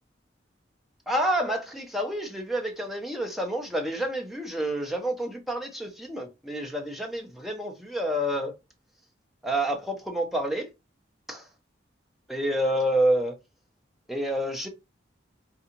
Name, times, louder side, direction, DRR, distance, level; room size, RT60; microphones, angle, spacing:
voice 1, 1.1-8.5 9.4-10.7 11.3-11.5 12.3-13.3 14.1-14.7, right 1 dB, ahead, 0.6 m, -28 dB
3.7 x 2.3 x 2.8 m
head